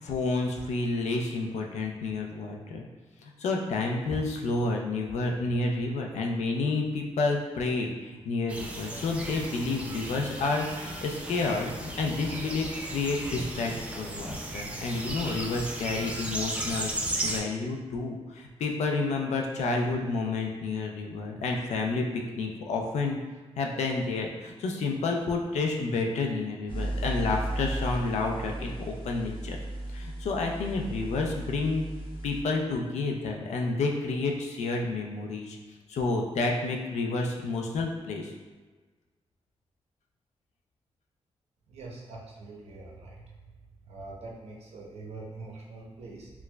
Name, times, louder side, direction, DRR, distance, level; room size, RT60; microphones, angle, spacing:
voice 1, 0.0-2.9 3.2-16.9 17.2-22.1 22.4-23.2 23.6-29.6 29.9-31.9 32.2-35.6 35.9-38.3, left 3 dB, 85° left, 1 dB, 0.4 m, -30 dB
sound 1, 8.5-17.4, right 1 dB, 10° right, 0.3 m, -35 dB
sound 2, 26.7-32.4, right 1 dB, 50° left, 0.7 m, -35 dB
voice 2, 41.7-43.4 43.8-46.3, right 3 dB, 65° right, -2 dB, 0.7 m, -44 dB
4.4 x 2.1 x 2.2 m, 1.3 s
wide cardioid pair, 145°, 11 cm